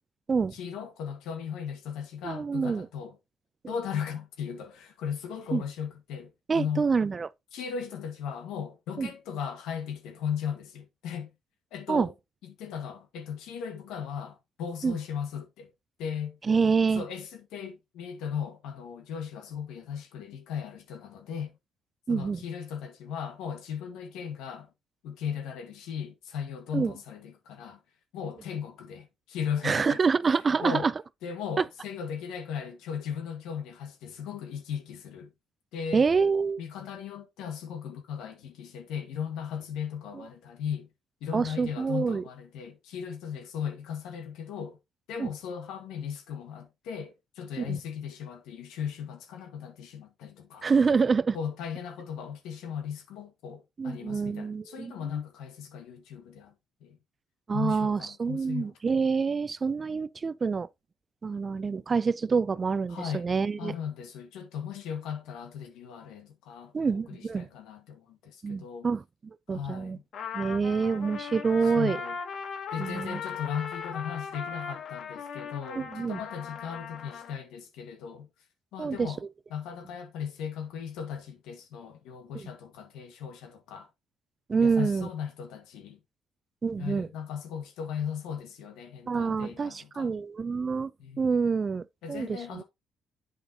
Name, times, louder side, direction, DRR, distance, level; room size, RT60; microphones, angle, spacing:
voice 1, 0.5-3.2 3.7-6.9 7.5-11.3 11.7-12.1 12.4-15.7 16.0-16.4 16.9-21.5 22.1-24.7 25.0-27.8 28.1-30.0 30.6-30.9 31.2-35.3 35.7-36.0 36.6-40.9 41.2-44.8 45.1-50.7 51.3-56.5 56.8-57.0 57.5-58.7 62.9-63.3 63.6-68.9 69.5-70.0 71.6-72.2 72.7-78.3 78.7-79.2 79.5-83.9 84.6-86.0 86.8-90.1 91.0-91.2 92.0-92.6, left 7 dB, 85° left, 1.6 m, -37 dB
voice 2, 2.2-2.9 3.6-3.7 5.5-5.6 6.5-7.3 9.0-9.1 11.9-12.1 14.8-15.0 16.4-17.0 22.1-22.4 26.7-26.9 29.6-30.9 31.6-31.7 35.9-36.6 40.1-40.3 41.3-42.2 45.2-45.3 47.6-47.8 50.6-51.4 53.8-54.9 57.5-60.7 61.2-63.7 66.7-67.5 68.4-70.0 70.3-72.0 72.8-73.2 75.8-76.2 78.8-79.1 82.3-82.5 84.5-85.1 86.6-87.1 89.1-90.9 91.2-92.6, right 5 dB, 30° right, 0.4 m, -27 dB
Trumpet, 70.1-77.3, left 6 dB, 60° left, 1.2 m, -38 dB
8.2 x 5.2 x 2.8 m
cardioid pair, 95°, 0 cm